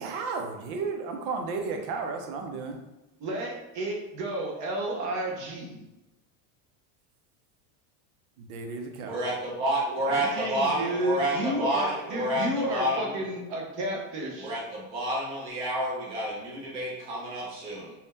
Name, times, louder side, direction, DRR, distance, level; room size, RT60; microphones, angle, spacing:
voice 1, 0.0-2.8 8.4-9.3, right 4 dB, 80° right, 4 dB, 0.7 m, -33 dB
voice 2, 3.2-5.8 10.1-14.6, right 1 dB, 40° right, -1 dB, 0.7 m, -31 dB
voice 3, 9.0-13.1 14.4-17.9, right 1 dB, 15° right, -5 dB, 0.4 m, -29 dB
2.7 x 2.2 x 3.5 m, 0.99 s
cardioid pair, 160°, 44 cm